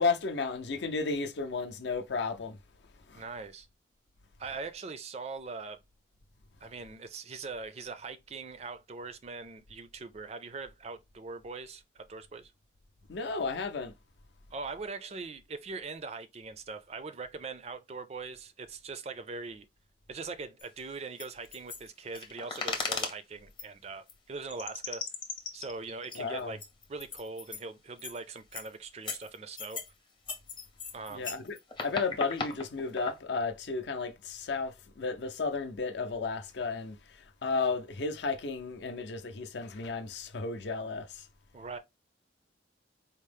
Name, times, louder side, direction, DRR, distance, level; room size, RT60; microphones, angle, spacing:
voice 1, 0.0-2.6 3.1-3.2 13.1-13.9 26.2-26.6 31.1-31.6 31.8-41.3, left 4 dB, 65° left, 0.5 m, -33 dB
voice 2, 3.1-3.7 4.4-5.8 6.6-12.5 14.5-19.7 20.1-25.1 25.5-26.6 26.9-29.8 30.9-31.3 41.5-41.8, right 4 dB, 35° right, 0.4 m, -41 dB
sound 1, 20.6-20.7 21.2-23.2 23.6-23.7 24.1-24.2 24.5-27.6 28.0-28.2 28.5-28.7 29.0-29.9 30.3-33.2, left 4 dB, 25° left, 0.6 m, -37 dB
4.3 x 2.0 x 3.3 m
head